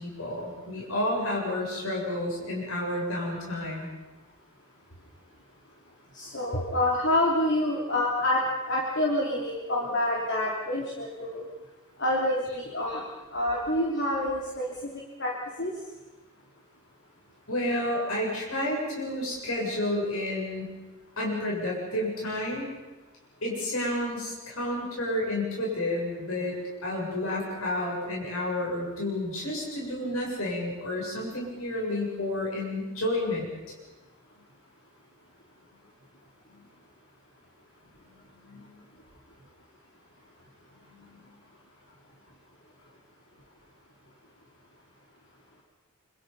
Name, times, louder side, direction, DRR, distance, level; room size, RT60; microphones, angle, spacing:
voice 1, 0.0-3.9 17.5-20.7 21.2-22.7 23.4-26.5 26.8-33.5 36.5-36.7 38.5-38.7 41.2-41.4, left 1 dB, 70° left, -3 dB, 7.6 m, -30 dB
voice 2, 6.1-11.4 12.0-13.0 13.3-14.7 15.2-15.3 15.6-15.7, left 1 dB, 55° left, -2 dB, 3.4 m, -27 dB
27.0 x 26.0 x 5.6 m, 1.1 s
head